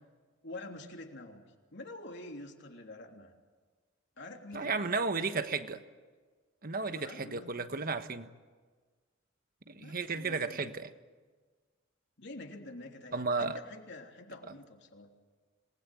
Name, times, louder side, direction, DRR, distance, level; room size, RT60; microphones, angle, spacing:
voice 1, 0.4-1.4 1.7-3.3 4.2-5.4 6.9-7.6 9.8-10.8 12.2-15.1, left 2 dB, 60° left, 3.3 m, -47 dB
voice 2, 4.5-5.8 6.6-8.3 9.7-10.9 13.1-13.6, right 4 dB, 50° right, 1.3 m, -33 dB
27.0 x 20.5 x 9.4 m
head